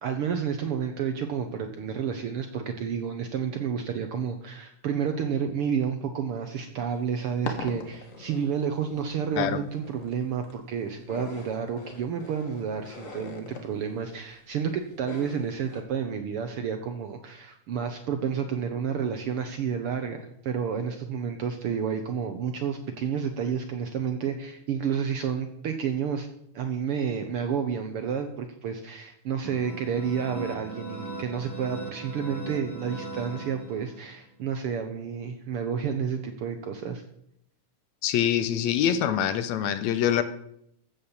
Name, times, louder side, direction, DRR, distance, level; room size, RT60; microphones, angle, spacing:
voice 1, 0.0-26.3 26.5-37.0, right 7 dB, 70° right, 6 dB, 1.4 m, -30 dB
sound 1, 6.9-15.8, left 3 dB, 40° left, 1.3 m, -41 dB
sound 2, 29.4-34.2, right 2 dB, 25° left, 0.4 m, -39 dB
voice 2, 38.0-40.2, left 10 dB, 75° left, 12 dB, 1.9 m, -25 dB
15.0 x 5.8 x 7.1 m, 0.73 s
omnidirectional pair, 3.4 m